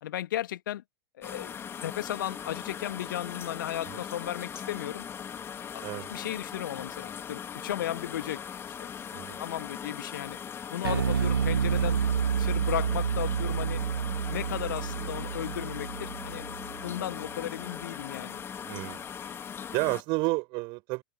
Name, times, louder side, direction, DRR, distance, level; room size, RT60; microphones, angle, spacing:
voice 1, 0.0-0.8 1.2-1.5 1.8-5.0 5.7-8.4 8.8-8.9 9.4-10.4 10.7-12.0 12.4-13.8 14.3-16.5 16.8-18.4, left 12 dB, 55° left, 1.8 m, -35 dB
sound 1, 1.2-20.0, left 8 dB, 20° left, 1.5 m, -40 dB
Bass guitar, 10.8-17.3, right 7 dB, 70° right, 0.5 m, -29 dB
voice 2, 18.7-19.1 19.7-21.0, right 26 dB, 40° right, 7.1 m, -31 dB
open air
figure-of-eight pair, 95°, 12 cm